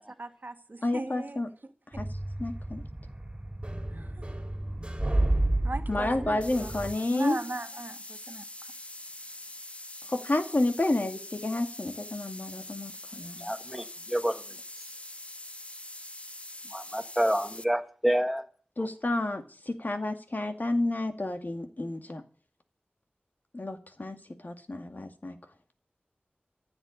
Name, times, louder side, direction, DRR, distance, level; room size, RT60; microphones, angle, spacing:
voice 1, 0.2-1.4 3.9-4.3 5.6-6.7 7.1-8.7, right 2 dB, 55° right, 1.5 m, -38 dB
voice 2, 0.8-1.5 1.9-2.1 2.4-2.8 5.9-7.4 10.1-13.5 18.8-22.2 23.5-25.4, left 2 dB, 50° left, 2.2 m, -30 dB
sound 1, 1.9-6.9, right 1 dB, 25° right, 4.2 m, -31 dB
sound 2, 6.4-17.6, left 1 dB, 35° left, 1.0 m, -44 dB
voice 3, 13.4-14.6 16.7-18.4 18.8-18.9, equal, ahead, 1.7 m, -28 dB
15.0 x 8.1 x 8.8 m
wide cardioid pair, 50°, 4 cm